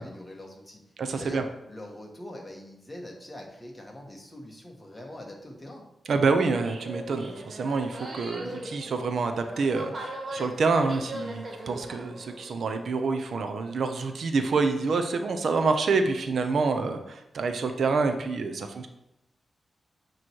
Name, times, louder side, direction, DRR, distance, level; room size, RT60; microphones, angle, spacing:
voice 1, 0.0-0.8 1.2-5.8, left 1 dB, 15° left, 0 dB, 1.2 m, -43 dB
voice 2, 1.0-1.4 6.1-18.9, right 4 dB, 70° right, 6 dB, 0.6 m, -27 dB
sound 1, 6.5-12.6, right 1 dB, 40° right, 1.1 m, -39 dB
8.5 x 3.1 x 4.6 m, 0.86 s
wide cardioid pair, 130°, 0 cm